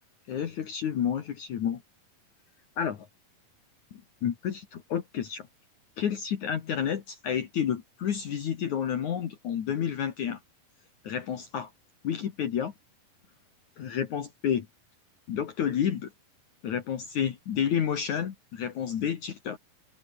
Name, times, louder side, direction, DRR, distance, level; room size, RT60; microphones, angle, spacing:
voice 1, 0.3-1.8 2.8-3.1 3.9-5.5 6.0-10.4 11.0-11.7 12.0-12.7 13.8-14.7 15.3-16.1 16.6-19.6, left 8 dB, 60° left, 3.0 m, -30 dB
omnidirectional pair, 4.2 m